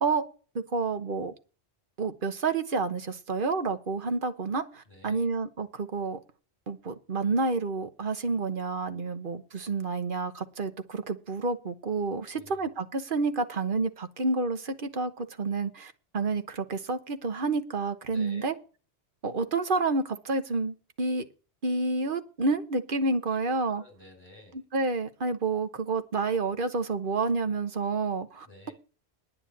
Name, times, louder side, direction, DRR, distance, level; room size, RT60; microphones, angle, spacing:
voice 1, 0.5-1.3 2.0-6.2 6.7-18.5 19.2-21.3 21.6-23.8 24.5-28.5, right 3 dB, 55° right, 9 dB, 1.3 m, -29 dB
voice 2, 4.9-5.3 12.2-12.7 18.1-18.5 23.3-24.6 28.4-28.7, left 1 dB, 25° left, 1 dB, 6.9 m, -52 dB
10.0 x 6.8 x 8.7 m, 0.37 s
omnidirectional pair, 1.1 m